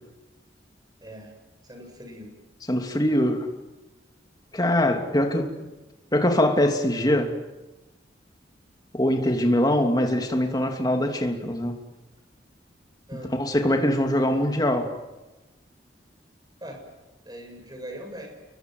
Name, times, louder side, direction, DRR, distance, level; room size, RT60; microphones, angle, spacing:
voice 1, 1.0-1.3 1.6-2.3 13.1-13.3 16.6-16.8 17.2-18.3, equal, 20° right, 7.7 m, -40 dB
voice 2, 2.7-3.5 4.5-5.7 6.1-7.4 8.9-11.8 13.4-14.9, left 1 dB, 20° left, 2.9 m, -23 dB
30.0 x 23.0 x 8.0 m
head